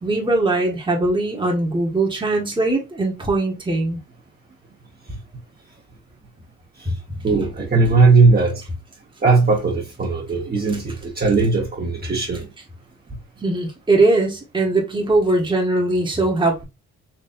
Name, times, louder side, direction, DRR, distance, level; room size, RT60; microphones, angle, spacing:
voice 1, 0.0-4.0 6.8-6.9 13.4-16.6, right 2 dB, 15° right, 1.5 m, -20 dB
voice 2, 7.2-8.5 9.2-12.5, right 3 dB, 30° right, 1.3 m, -18 dB
4.3 x 3.0 x 2.6 m
cardioid pair, 90°, 30 cm